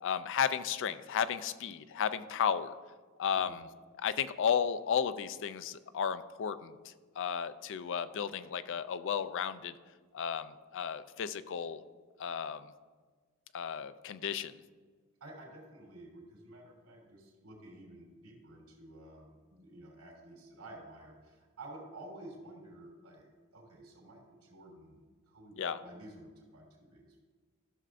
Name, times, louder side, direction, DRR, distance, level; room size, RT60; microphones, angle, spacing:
voice 1, 0.0-2.7 3.2-3.7 4.0-6.7 7.2-9.7 10.1-11.8 12.2-12.7 13.5-14.5 25.6-25.8, left 7 dB, 55° left, 14 dB, 0.4 m, -33 dB
voice 2, 15.2-27.2, right 1 dB, 80° right, -2 dB, 2.8 m, -52 dB
14.0 x 6.7 x 2.5 m, 1.4 s
head